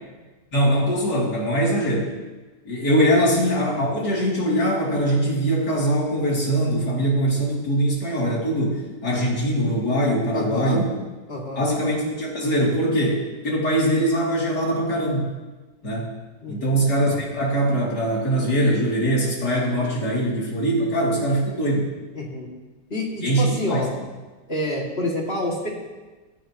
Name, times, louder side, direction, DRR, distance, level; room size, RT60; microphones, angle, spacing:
voice 1, 0.5-2.1 2.7-10.9 11.6-15.3 15.8-16.1 16.5-21.9 23.2-23.8, right 1 dB, 80° left, -4 dB, 3.7 m, -22 dB
voice 2, 10.3-10.8 11.3-11.7 16.4-16.8 22.1-22.5 22.9-23.9 24.5-25.7, left 1 dB, 35° left, -2 dB, 2.8 m, -28 dB
16.5 x 15.0 x 3.1 m, 1.2 s
omnidirectional pair, 1.7 m